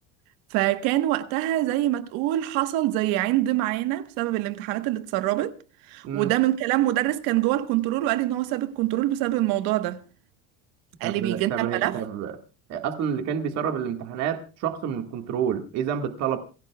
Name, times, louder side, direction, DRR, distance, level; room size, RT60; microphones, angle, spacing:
voice 1, 0.5-5.6 5.9-10.0 11.0-12.0, right 15 dB, 65° right, 1.4 m, -25 dB
voice 2, 11.0-12.3 12.7-16.4, right 8 dB, 45° right, 1.8 m, -28 dB
28.0 x 16.0 x 2.3 m
cardioid pair, 165°, 38 cm